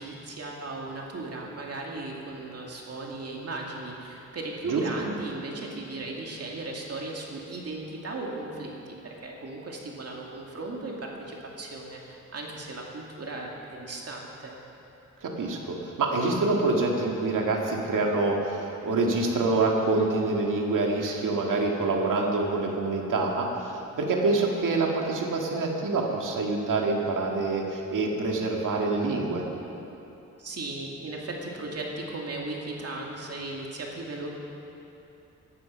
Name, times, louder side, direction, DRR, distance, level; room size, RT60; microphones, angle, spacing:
voice 1, 0.0-14.6 30.4-34.3, right 2 dB, 50° right, -1 dB, 2.4 m, -36 dB
voice 2, 15.2-29.4, right 3 dB, 85° right, 0 dB, 2.1 m, -26 dB
16.5 x 11.5 x 5.7 m, 2.9 s
wide cardioid pair, 120°, 31 cm